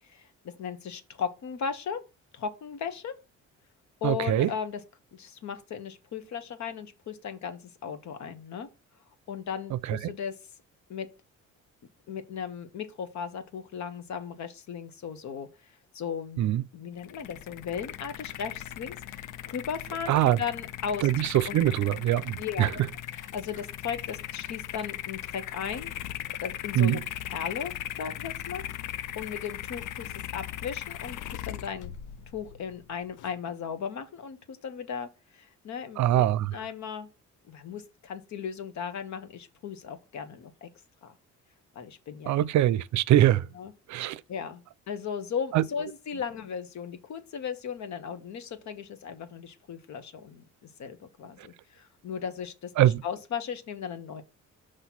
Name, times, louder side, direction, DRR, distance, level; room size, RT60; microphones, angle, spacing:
voice 1, 0.6-2.0 2.3-3.1 4.0-4.8 5.1-8.7 9.3-10.3 10.9-11.1 12.1-15.5 15.9-21.1 21.5-21.6 22.4-22.7 23.1-25.9 26.4-27.7 28.0-31.9 32.3-36.3 36.5-37.1 37.5-40.7 41.0-41.1 41.7-42.4 43.5-43.7 44.3-44.6 44.9-50.5 50.8-54.2, left 7 dB, 70° left, 1.2 m, -36 dB
voice 2, 4.0-4.5 9.9-10.0 16.4-16.6 20.1-20.4 21.0-22.7 26.8-27.0 36.0-36.5 42.3-43.5 43.9-44.2 45.5-45.6 52.8-53.0, right 13 dB, 70° right, 0.5 m, -23 dB
sound 1, 17.0-33.3, left 12 dB, 85° left, 0.5 m, -39 dB
5.9 x 3.3 x 5.7 m
cardioid pair, 90°, 30 cm